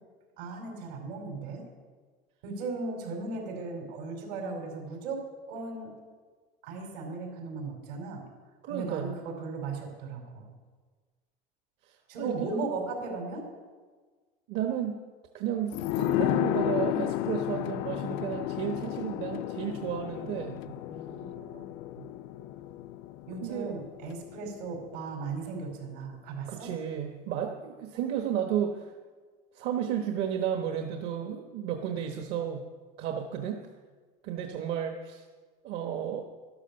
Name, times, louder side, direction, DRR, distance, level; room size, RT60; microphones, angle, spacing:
voice 1, 0.4-1.7 2.4-5.2 5.5-5.9 6.6-8.2 8.7-10.5 12.1-13.4 20.6-21.7 21.9-22.1 23.2-26.7, right 3 dB, 85° right, 1 dB, 4.8 m, -37 dB
voice 2, 8.6-9.1 11.8-12.4 14.5-15.0 15.3-20.6 23.4-23.7 26.5-28.9 29.5-32.6 33.0-33.6 34.2-35.2 35.6-36.2, right 9 dB, 65° right, 4 dB, 1.2 m, -33 dB
sound 1, 15.7-25.0 25.3-25.4, left 14 dB, 65° left, 0.5 m, -33 dB
12.5 x 12.0 x 6.7 m, 1.5 s
supercardioid pair, 130°, 19 cm